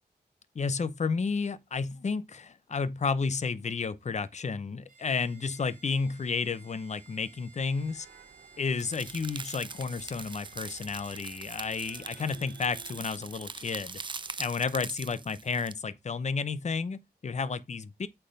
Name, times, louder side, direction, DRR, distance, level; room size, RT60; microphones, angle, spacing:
voice 1, 0.5-8.1 8.6-14.0 14.4-18.1, left 5 dB, 45° left, 0.7 m, -32 dB
Bowed string instrument, 4.9-12.0, right 5 dB, 50° right, 2.4 m, -57 dB
sound 1, 7.6-14.4, right 6 dB, 90° right, 1.6 m, -55 dB
sound 2, 8.8-15.7, right 4 dB, 30° right, 0.4 m, -42 dB
8.8 x 3.5 x 5.2 m
wide cardioid pair, 100°, 17 cm